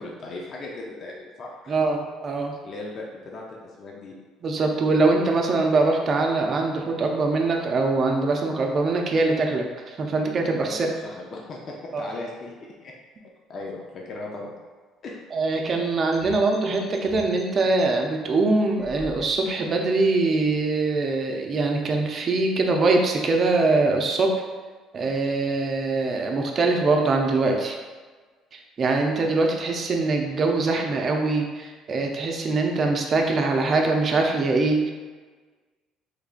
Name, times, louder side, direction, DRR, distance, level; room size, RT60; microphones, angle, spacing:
voice 1, 0.0-1.8 2.6-4.1 10.6-12.5 12.8-12.9 13.5-14.5 15.0-15.3, left 2 dB, 45° left, -1 dB, 0.6 m, -37 dB
voice 2, 1.7-2.5 4.4-10.9 11.9-12.0 15.3-24.4 24.9-27.8 28.5-34.9, right 3 dB, 40° right, 2 dB, 0.5 m, -23 dB
sound 1, 16.1-17.8 18.7-19.7, right 1 dB, 5° left, 0.6 m, -44 dB
3.6 x 3.3 x 2.4 m, 1.4 s
cardioid pair, 100°, 0 cm